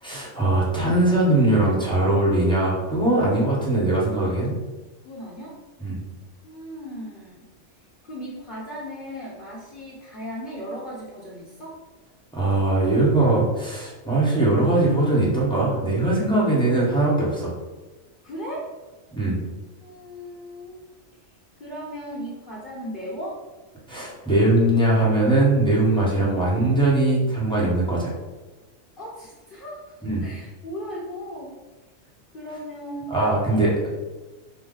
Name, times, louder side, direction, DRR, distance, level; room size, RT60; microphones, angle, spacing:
voice 1, 0.0-4.6 5.8-6.0 12.3-17.5 19.1-19.4 23.9-28.1 30.0-30.3 33.1-33.9, right 2 dB, 5° left, -6 dB, 0.9 m, -21 dB
voice 2, 5.0-5.6 6.4-7.5 8.0-11.8 18.2-18.7 19.8-20.8 21.6-23.4 29.0-29.9 30.2-31.6 32.3-33.2 33.5-33.9, equal, 45° left, -7 dB, 1.0 m, -36 dB
5.4 x 2.2 x 3.8 m, 1.2 s
omnidirectional pair, 1.4 m